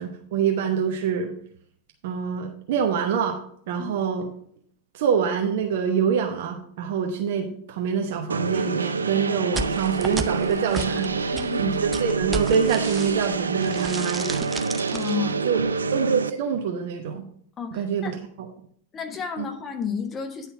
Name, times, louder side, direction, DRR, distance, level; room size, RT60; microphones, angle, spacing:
voice 1, 0.0-1.3 2.0-3.4 3.7-4.3 4.9-14.4 15.4-15.6 15.9-17.3 17.7-18.5 19.4-19.5, right 7 dB, 55° right, 3 dB, 0.9 m, -26 dB
sound 1, 8.3-16.3, right 4 dB, 75° right, 0.4 m, -27 dB
sound 2, 9.5-13.3 13.6-15.1, right 3 dB, 15° right, 0.6 m, -34 dB
voice 2, 11.4-11.8 14.9-15.4 17.6-18.1 18.9-20.5, left 7 dB, 25° left, 5 dB, 1.2 m, -31 dB
9.8 x 4.2 x 5.8 m, 0.62 s
figure-of-eight pair, 90°, 0 cm